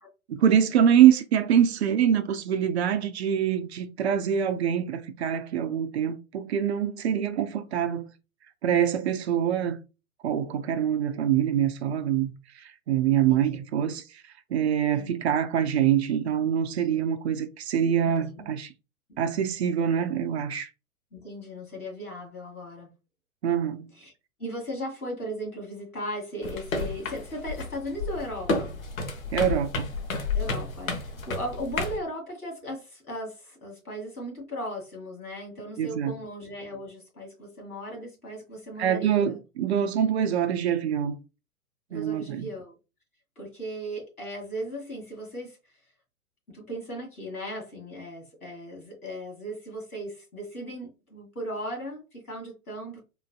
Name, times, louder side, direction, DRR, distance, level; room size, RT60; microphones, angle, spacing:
voice 1, 0.3-8.1 8.6-9.8 10.2-12.3 12.6-14.0 14.5-18.7 19.2-20.7 23.4-23.9 29.3-29.9 35.8-36.1 38.8-41.2 41.9-42.5, right 9 dB, 50° right, 0.5 m, -24 dB
voice 2, 21.1-22.9 24.0-24.1 24.4-28.7 30.3-39.4 41.9-42.7 43.4-45.6 46.5-53.0, equal, 85° left, 2.0 m, -37 dB
sound 1, 26.4-32.0, left 3 dB, 70° left, 1.1 m, -31 dB
3.8 x 2.6 x 2.3 m
figure-of-eight pair, 110°, 43 cm